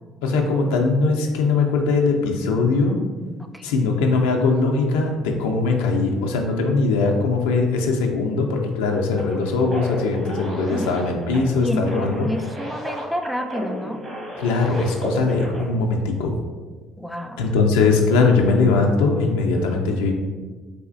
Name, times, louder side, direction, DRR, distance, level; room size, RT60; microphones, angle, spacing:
voice 1, 0.2-3.0 3.6-12.3 14.4-16.4 17.4-20.1, left 3 dB, 85° left, 2 dB, 0.4 m, -20 dB
voice 2, 3.4-3.7 10.7-10.9 11.6-14.0 17.0-17.5, left 1 dB, 5° left, 5 dB, 0.3 m, -29 dB
sound 1, 9.2-15.7, equal, 50° right, 1.0 m, -34 dB
4.1 x 2.3 x 2.5 m, 1.3 s
hypercardioid pair, 60°, 0 cm